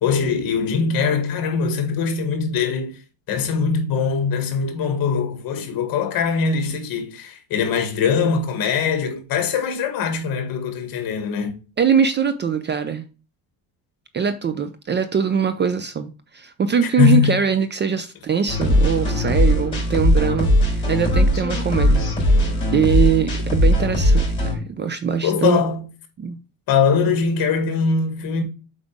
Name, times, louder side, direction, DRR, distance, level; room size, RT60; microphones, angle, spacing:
voice 1, 0.0-3.0 3.3-11.6 16.8-17.4 25.2-25.8 26.7-28.4, left 6 dB, 55° left, 2.1 m, -21 dB
voice 2, 11.8-13.0 14.1-22.0 22.7-25.6 26.2-26.4, right 6 dB, 25° right, 0.5 m, -22 dB
sound 1, 18.5-24.6, left 1 dB, 10° left, 4.6 m, -19 dB
7.9 x 5.1 x 3.5 m
cardioid pair, 160°, 43 cm